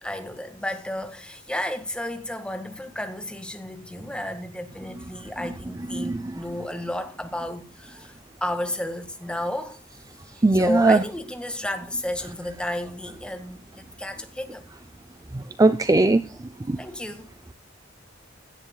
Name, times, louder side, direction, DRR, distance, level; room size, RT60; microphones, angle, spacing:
voice 1, 0.0-9.8 10.3-14.6 16.3-16.4 16.8-17.3, left 1 dB, 5° left, 1.6 m, -32 dB
voice 2, 5.9-6.4 10.4-11.0 15.3-16.2 16.7-16.8, right 2 dB, 20° right, 0.4 m, -19 dB
16.5 x 10.5 x 2.3 m
head